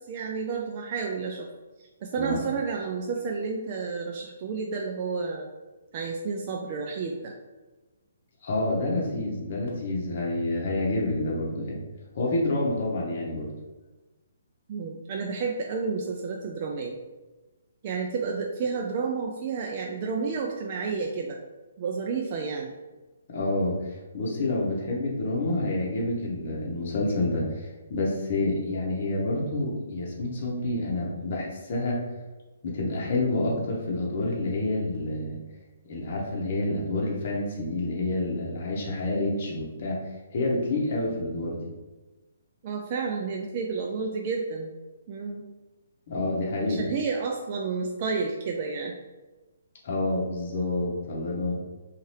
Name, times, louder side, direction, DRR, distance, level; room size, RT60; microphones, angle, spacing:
voice 1, 0.1-1.5 1.8-5.5 5.9-7.3 14.7-17.0 17.8-21.4 21.8-22.7 42.6-44.7 45.1-45.4 46.6-48.9, right 5 dB, 40° right, 1 dB, 0.3 m, -31 dB
voice 2, 8.4-11.8 12.1-13.5 23.3-32.0 32.6-35.4 35.9-40.0 40.3-41.7 46.1-46.9 49.8-51.5, left 2 dB, 50° left, -3 dB, 0.9 m, -28 dB
2.6 x 2.4 x 3.2 m, 1.2 s
hypercardioid pair, 145°, 0 cm